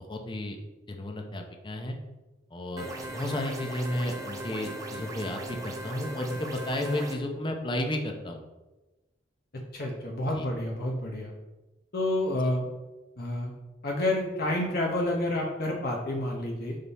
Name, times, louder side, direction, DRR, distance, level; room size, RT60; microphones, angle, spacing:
voice 1, 0.1-0.6 0.9-1.9 2.5-2.9 3.1-8.4 10.3-10.5 12.4-12.5, left 1 dB, 25° left, 3 dB, 0.6 m, -32 dB
sound 1, 2.8-7.2, right 1 dB, 20° right, 0.8 m, -38 dB
voice 2, 9.7-11.3 11.9-12.7 13.2-13.5 13.8-16.8, left 1 dB, 55° left, -1 dB, 0.9 m, -29 dB
5.6 x 5.2 x 4.1 m, 1.1 s
head